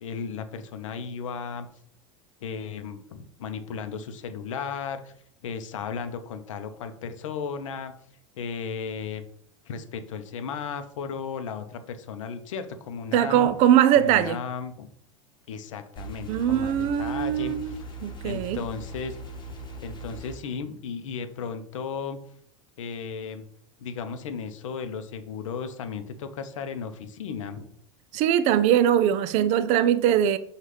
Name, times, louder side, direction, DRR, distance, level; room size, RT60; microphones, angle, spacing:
voice 1, 0.0-1.7 2.4-5.1 5.4-7.9 8.4-9.2 9.7-13.5 14.0-14.9 15.5-17.8 18.2-19.2 19.5-22.2 22.8-23.4 23.8-27.7, left 6 dB, 70° left, 0.6 m, -35 dB
voice 2, 13.1-14.4 16.3-17.7 18.0-18.6 28.1-30.4, right 10 dB, 45° right, 0.4 m, -21 dB
sound 1, 16.0-20.4, right 2 dB, 25° left, 1.2 m, -40 dB
6.1 x 2.4 x 3.2 m
hypercardioid pair, 85°, 17 cm